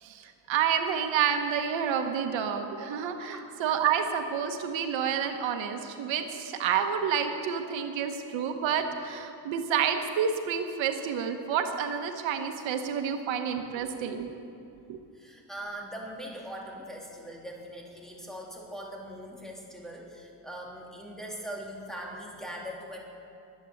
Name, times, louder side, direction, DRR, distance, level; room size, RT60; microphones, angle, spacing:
voice 1, 0.0-14.3 14.9-15.0, right 7 dB, 85° right, 6 dB, 1.4 m, -29 dB
voice 2, 15.1-23.0, equal, ahead, -2 dB, 3.1 m, -41 dB
21.5 x 8.5 x 7.9 m, 2.7 s
cardioid pair, 130°, 44 cm